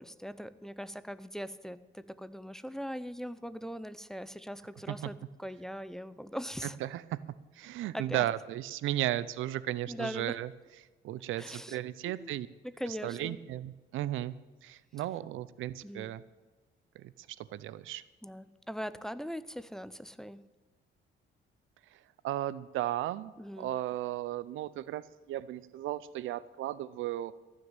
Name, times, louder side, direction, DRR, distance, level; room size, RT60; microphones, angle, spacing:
voice 1, 0.0-6.8 7.9-8.3 9.9-10.4 11.4-11.8 12.1-12.4 12.6-13.4 15.8-16.1 18.2-20.4 23.4-23.7, equal, ahead, 14 dB, 0.6 m, -41 dB
voice 2, 6.8-7.2 7.6-10.5 11.0-12.5 13.0-14.3 14.6-16.2 17.0-17.1 17.5-18.0 22.2-23.3 23.6-27.3, right 13 dB, 85° right, 18 dB, 0.6 m, -35 dB
14.5 x 6.5 x 9.0 m, 1.2 s
cardioid pair, 90°, 20 cm